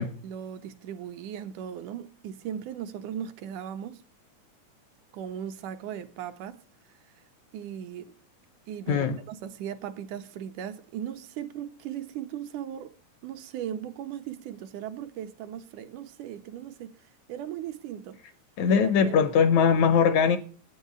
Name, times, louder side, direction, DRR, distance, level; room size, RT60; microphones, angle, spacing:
voice 1, 0.2-4.0 5.1-6.6 7.5-8.1 8.7-12.9 13.2-17.0 17.3-18.2 18.7-19.2, right 9 dB, 80° right, 2.0 m, -38 dB
voice 2, 8.9-9.2 18.6-20.4, left 6 dB, 75° left, 1.8 m, -21 dB
8.9 x 5.5 x 8.0 m
omnidirectional pair, 3.7 m